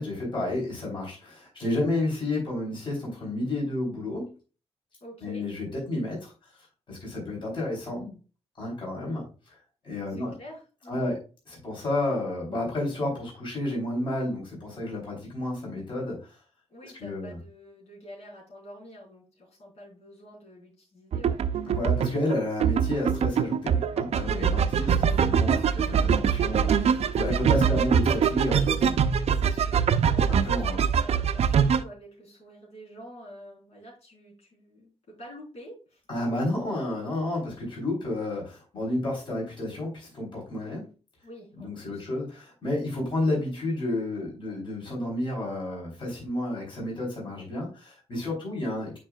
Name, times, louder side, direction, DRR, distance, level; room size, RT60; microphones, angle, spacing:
voice 1, 0.0-4.4 5.2-6.3 6.9-8.2 8.6-9.3 9.8-10.4 10.9-11.2 11.5-16.4 16.8-17.4 21.7-28.9 30.3-30.8 36.1-40.8 41.6-49.0, left 1 dB, 50° left, -3 dB, 3.6 m, -31 dB
voice 2, 5.0-5.4 10.1-11.2 16.7-21.8 24.8-25.1 29.2-36.0 41.2-42.1, equal, 80° left, -4 dB, 3.8 m, -48 dB
sound 1, 21.1-31.8, right 7 dB, 70° right, 0.5 m, -23 dB
8.8 x 5.2 x 2.3 m, 0.34 s
wide cardioid pair, 115°, 11 cm